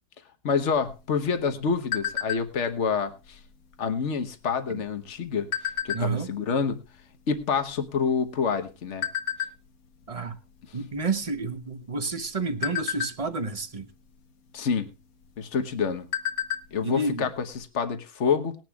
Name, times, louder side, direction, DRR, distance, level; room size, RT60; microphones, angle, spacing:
voice 1, 0.4-3.4 3.8-5.5 5.8-6.8 7.3-9.1 14.5-14.9 15.4-16.1 16.7-18.5, left 6 dB, 55° left, 1.4 m, -27 dB
sound 1, 0.7-2.7 3.2-3.5 3.7-4.1 4.8-6.4 7.0-7.1 7.3-8.5 9.0-9.5 10.0-10.3 10.6-10.8 11.2-11.8 12.2-13.6 14.7-14.8 15.3-15.4 15.7-16.8 17.0-17.1 17.5-17.6, left 9 dB, 80° left, 1.5 m, -31 dB
voice 2, 5.9-6.3 10.1-10.4 10.7-13.9 16.8-17.3, right 3 dB, 30° right, 0.9 m, -30 dB
19.5 x 10.5 x 2.4 m
omnidirectional pair, 1.5 m